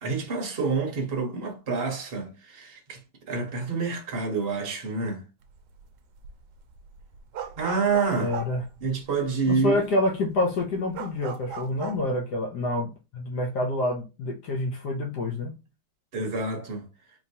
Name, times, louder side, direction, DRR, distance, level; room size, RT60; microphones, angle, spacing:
voice 1, 0.0-3.0 3.3-5.2 7.6-8.3 8.8-9.8 16.1-16.8, right 4 dB, 35° right, 1.0 m, -28 dB
sound 1, 5.5-5.9 6.2-9.4 9.8-9.9 10.2-12.0, right 6 dB, 70° right, 1.1 m, -38 dB
voice 2, 8.2-8.6 9.5-15.5, left 2 dB, 65° left, 1.1 m, -27 dB
4.3 x 3.0 x 2.7 m
omnidirectional pair, 2.4 m